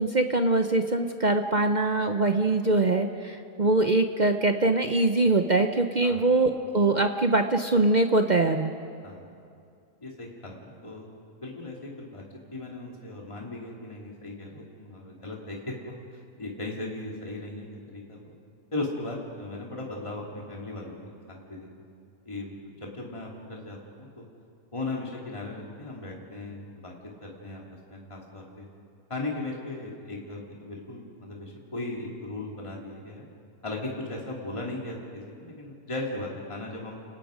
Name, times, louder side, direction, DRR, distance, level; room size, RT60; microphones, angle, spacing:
voice 1, 0.0-8.7, right 2 dB, 50° right, 6 dB, 0.5 m, -23 dB
voice 2, 10.0-11.1 11.4-12.2 12.5-18.3 18.7-21.7 22.2-24.2 24.7-26.9 27.2-27.6 27.9-28.7 29.1-33.3 33.6-37.0, left 2 dB, 20° left, -2 dB, 2.6 m, -37 dB
29.5 x 18.5 x 5.1 m, 2.4 s
omnidirectional pair, 1.7 m